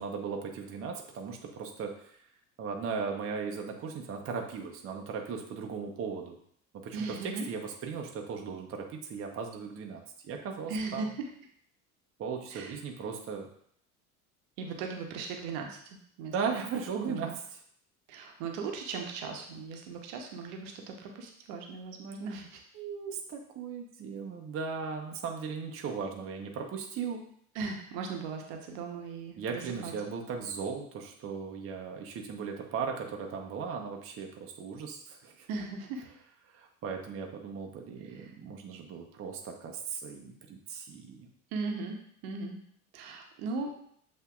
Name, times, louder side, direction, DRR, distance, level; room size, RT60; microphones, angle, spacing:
voice 1, 0.0-2.2 2.6-6.4 6.8-11.0 12.2-13.5 16.3-17.4 22.7-27.2 29.4-35.5 36.5-41.3, right 5 dB, 30° right, 2 dB, 0.7 m, -37 dB
voice 2, 6.9-7.4 10.7-11.3 12.5-12.8 14.6-16.6 17.0-17.3 18.1-22.6 27.5-29.9 35.5-36.0 38.0-38.3 41.5-42.0 42.2-42.6 42.9-43.7, right 4 dB, 60° right, 3 dB, 0.9 m, -38 dB
8.0 x 2.7 x 2.4 m, 0.65 s
figure-of-eight pair, 65°, 44 cm